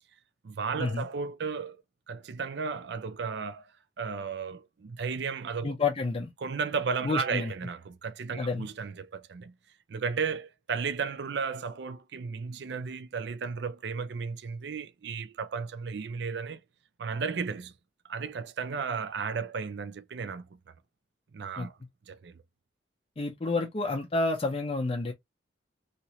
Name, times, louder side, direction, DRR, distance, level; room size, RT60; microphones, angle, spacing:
voice 1, 0.4-1.8 2.1-3.7 4.0-5.8 6.4-9.5 9.9-16.6 17.0-17.7 18.1-20.6 21.3-21.8 22.1-22.3, right 5 dB, 60° right, 0.4 m, -34 dB
voice 2, 5.6-6.3 7.0-7.5 8.4-8.6 21.6-21.7 23.2-25.1, left 3 dB, 30° left, 0.5 m, -29 dB
2.9 x 2.8 x 2.9 m
head